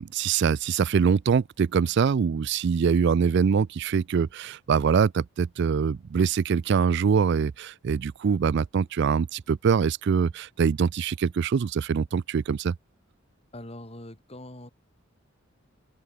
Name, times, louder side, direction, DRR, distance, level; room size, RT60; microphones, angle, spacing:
voice 1, 0.0-12.8, right 6 dB, 60° right, 0.4 m, -24 dB
voice 2, 13.5-14.7, left 1 dB, 30° left, 3.3 m, -42 dB
head